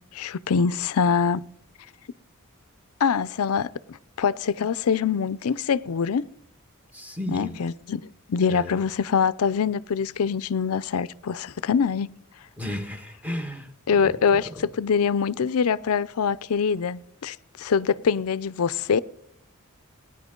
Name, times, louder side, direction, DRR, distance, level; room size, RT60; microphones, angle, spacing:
voice 1, 0.1-1.4 3.0-6.3 7.3-8.0 8.3-12.1 13.9-14.5 14.8-19.0, left 6 dB, 75° left, 0.5 m, -24 dB
voice 2, 6.9-7.6 8.5-8.8 12.6-14.7, left 1 dB, 5° right, 1.3 m, -34 dB
18.5 x 9.9 x 3.8 m
head